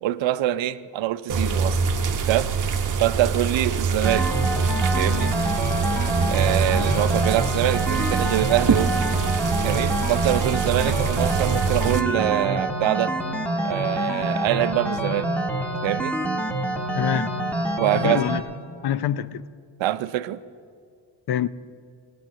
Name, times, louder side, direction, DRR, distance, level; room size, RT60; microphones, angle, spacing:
voice 1, 0.0-1.8 2.3-2.5 3.0-4.3 5.0-5.3 6.3-8.9 9.6-13.1 13.6-15.3 15.8-16.2 17.8-18.3 19.8-20.4, right 14 dB, 75° right, 0.6 m, -24 dB
sound 1, 1.3-12.0, right 5 dB, 45° right, 1.0 m, -24 dB
sound 2, 4.0-18.4, right 1 dB, 5° left, 1.4 m, -27 dB
voice 2, 16.9-17.3 17.9-18.4 18.8-19.5 21.3-21.5, left 10 dB, 55° left, 0.6 m, -25 dB
17.0 x 8.8 x 7.4 m
cardioid pair, 85°, 45 cm